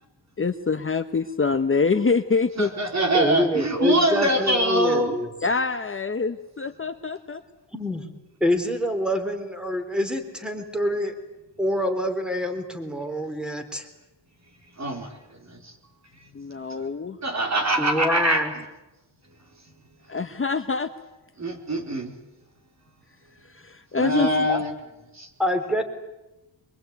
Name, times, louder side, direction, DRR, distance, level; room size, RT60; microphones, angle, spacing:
voice 1, 0.4-2.7 5.4-7.4 16.3-17.2 20.1-20.9 23.4-24.5, left 4 dB, 30° left, 8 dB, 1.0 m, -25 dB
voice 2, 2.6-5.2 14.8-15.2 15.4-15.7 17.2-18.4 21.4-22.1 23.9-24.7 25.1-25.3, right 1 dB, 35° right, 4 dB, 4.6 m, -24 dB
voice 3, 3.1-5.3 7.7-8.0 8.4-11.1 11.6-13.9 17.8-18.5 24.5-24.6 25.4-25.8, equal, ahead, 6 dB, 3.7 m, -26 dB
24.5 x 22.5 x 9.3 m, 0.99 s
cardioid pair, 100°, 44 cm